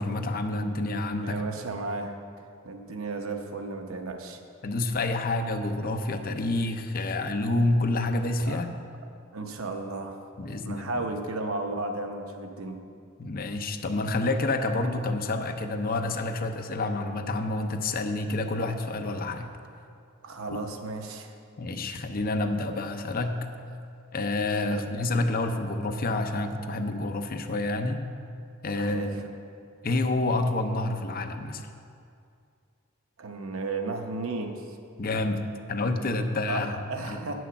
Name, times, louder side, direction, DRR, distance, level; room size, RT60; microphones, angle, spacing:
voice 1, 0.0-1.5 4.6-8.7 10.4-11.1 13.2-19.5 20.5-20.6 21.6-23.4 24.1-28.0 28.6-29.2 29.8-31.6 35.0-37.3, left 2 dB, 45° left, 6 dB, 0.6 m, -28 dB
voice 2, 1.2-2.2 2.6-4.4 8.5-8.6 9.3-10.2 10.6-12.8 20.2-21.3 24.6-24.8 28.8-29.1 33.2-34.8 36.5-37.3, right 3 dB, 85° right, 4 dB, 0.9 m, -34 dB
8.7 x 6.3 x 7.0 m, 2.4 s
head